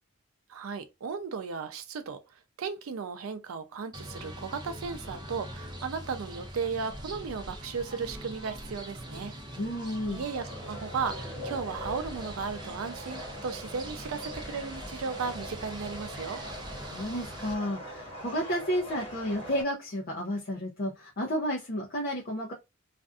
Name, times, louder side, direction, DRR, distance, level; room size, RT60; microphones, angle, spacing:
voice 1, 0.5-2.2 2.6-9.3 10.1-16.4, right 5 dB, 85° right, 0.4 m, -35 dB
sound 1, 3.9-17.6, right 1 dB, 20° right, 0.5 m, -42 dB
voice 2, 9.6-10.2 16.8-22.5, equal, 45° left, 0.5 m, -32 dB
sound 2, 10.3-19.6, left 1 dB, 25° left, 1.3 m, -43 dB
2.5 x 2.3 x 2.4 m
head